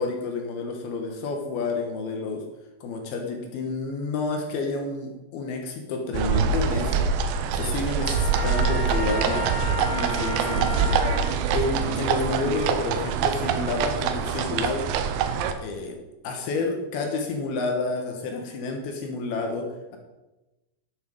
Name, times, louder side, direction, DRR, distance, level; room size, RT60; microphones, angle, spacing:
voice 1, 0.0-2.5 2.8-7.1 7.5-9.5 9.9-11.0 11.5-14.9 15.6-20.0, left 3 dB, 70° left, 3 dB, 2.8 m, -30 dB
sound 1, 6.1-15.5, right 6 dB, 85° right, 3.0 m, -25 dB
Trumpet, 8.0-11.4, left 1 dB, 30° right, 3.6 m, -33 dB
11.5 x 7.3 x 5.2 m, 1.0 s
omnidirectional pair, 5.1 m